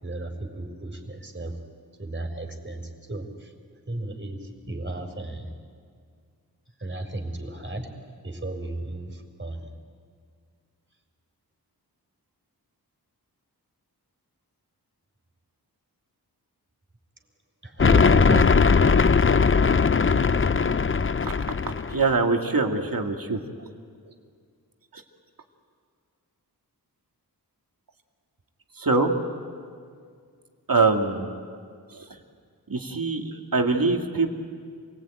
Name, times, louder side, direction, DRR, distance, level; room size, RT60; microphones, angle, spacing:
voice 1, 0.0-1.6 2.0-3.5 3.9-5.5 6.8-8.0 8.2-9.7 17.6-19.3, right 2 dB, 30° right, 5 dB, 4.1 m, -33 dB
sound 1, 17.8-22.1, left 5 dB, 35° left, 0.6 m, -19 dB
voice 2, 21.9-23.4 24.9-25.0 28.8-29.1 30.7-31.4 31.9-32.1 32.7-34.3, right 3 dB, 60° right, 3 dB, 2.3 m, -23 dB
27.5 x 19.5 x 9.1 m, 2.1 s
wide cardioid pair, 50°, 38 cm